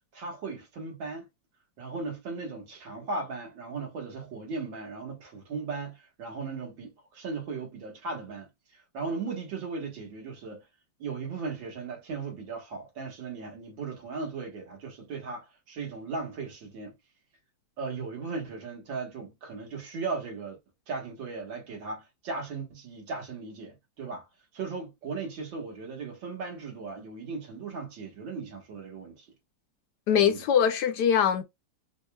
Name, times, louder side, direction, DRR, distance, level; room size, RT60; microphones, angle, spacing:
voice 1, 0.1-1.3 1.8-8.5 8.9-10.6 11.0-16.9 17.8-20.6 20.9-24.3 24.5-29.3 30.2-30.4, right 4 dB, 75° right, 2.3 m, -37 dB
voice 2, 30.1-31.4, left 8 dB, 70° left, 1.1 m, -22 dB
5.3 x 2.4 x 2.2 m
omnidirectional pair, 2.1 m